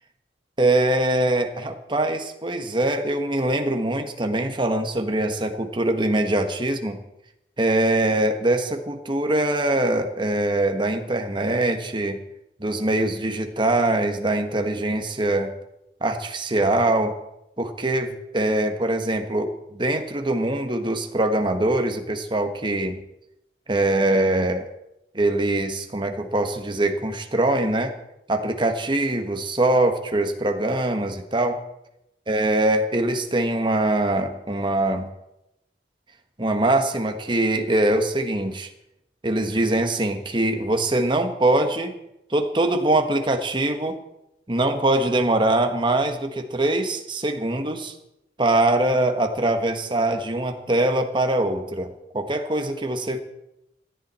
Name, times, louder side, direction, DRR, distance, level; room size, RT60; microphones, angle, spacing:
voice 1, 0.6-7.0 7.6-12.2 12.6-15.5 16.0-17.1 17.6-23.0 23.7-24.7 25.1-27.9 28.3-31.6 32.3-35.1 36.4-38.7 39.2-41.9 42.3-44.0 44.5-47.9 48.4-53.2, right 1 dB, 25° right, 5 dB, 1.5 m, -23 dB
18.5 x 14.0 x 4.4 m, 0.86 s
head